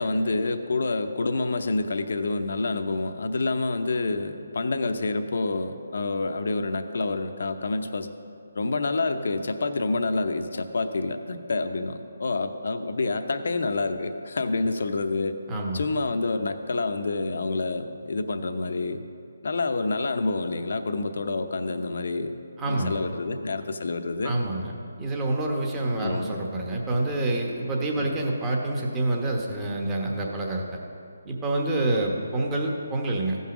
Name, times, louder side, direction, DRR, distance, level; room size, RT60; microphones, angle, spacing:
voice 1, 0.0-8.1 8.5-15.4 15.7-19.0 19.4-22.3 22.6-24.4 26.0-26.4 28.0-28.2, left 3 dB, 65° left, 8 dB, 0.8 m, -28 dB
voice 2, 15.5-15.9 22.6-23.0 24.2-24.7 25.0-30.8 31.2-33.4, right 2 dB, 15° right, -1 dB, 1.1 m, -27 dB
15.0 x 5.5 x 6.1 m, 2.5 s
hypercardioid pair, 160°, 0 cm